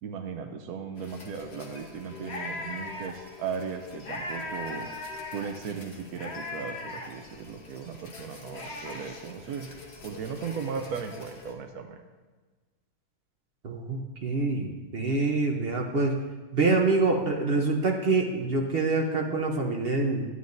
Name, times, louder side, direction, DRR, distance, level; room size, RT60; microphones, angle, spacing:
voice 1, 0.0-4.9 5.3-9.7 10.0-12.0, right 6 dB, 75° right, 5 dB, 1.1 m, -37 dB
sound 1, 1.0-11.5, left 2 dB, 45° left, 1.3 m, -41 dB
voice 2, 13.6-16.2 16.5-20.3, right 3 dB, 45° right, 1 dB, 0.9 m, -26 dB
12.5 x 9.5 x 2.6 m, 1.3 s
omnidirectional pair, 1.7 m